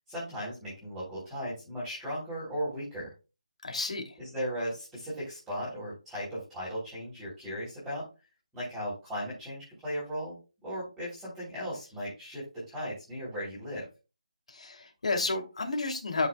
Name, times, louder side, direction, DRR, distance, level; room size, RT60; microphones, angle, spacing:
voice 1, 0.1-3.1 4.2-8.0 8.5-10.4 10.6-13.8, equal, 5° right, 3.2 m, -37 dB
voice 2, 3.6-4.2 14.5-16.3, left 3 dB, 65° left, 2.6 m, -31 dB
12.5 x 5.9 x 2.2 m
hypercardioid pair, 175°, 4 cm